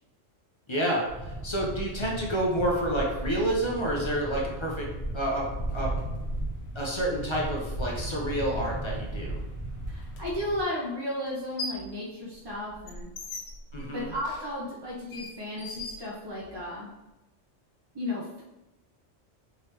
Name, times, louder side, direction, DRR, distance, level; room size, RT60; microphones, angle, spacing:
voice 1, 0.7-4.9 5.1-5.9 6.7-9.4 13.7-14.1, right 1 dB, 35° left, -2 dB, 0.5 m, -29 dB
sound 1, 1.1-10.6, right 1 dB, 15° left, 1.1 m, -35 dB
voice 2, 9.9-13.1 13.8-16.9 17.9-18.4, left 1 dB, 25° right, -5 dB, 0.6 m, -34 dB
sound 2, 10.1-10.2 11.3-11.9 12.3-16.7, left 2 dB, 75° left, 0.9 m, -40 dB
3.7 x 3.0 x 3.1 m, 0.99 s
omnidirectional pair, 1.3 m